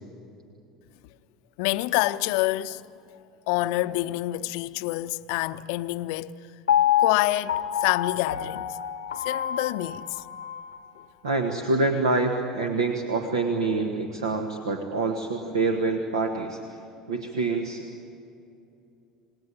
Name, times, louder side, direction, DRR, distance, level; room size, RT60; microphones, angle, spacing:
voice 1, 1.6-2.8 3.5-6.4 7.0-8.8 9.2-10.2, left 18 dB, 55° left, 0.7 m, -27 dB
Piano, 6.7-10.8 11.3-11.4, left 10 dB, 75° left, 0.9 m, -27 dB
voice 2, 11.2-16.6 17.1-17.8, right 3 dB, 75° right, 1.6 m, -26 dB
27.5 x 19.5 x 9.9 m
figure-of-eight pair, 70°, 3 cm